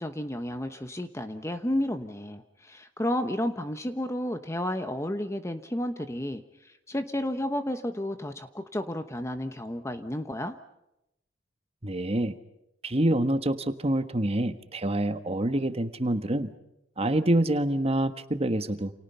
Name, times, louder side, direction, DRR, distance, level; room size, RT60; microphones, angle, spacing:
voice 1, 0.0-10.6, left 1 dB, 15° left, 8 dB, 1.1 m, -32 dB
voice 2, 11.8-12.3 12.8-16.5 17.0-18.9, right 1 dB, 30° right, 10 dB, 1.4 m, -26 dB
29.5 x 28.5 x 5.7 m, 0.86 s
head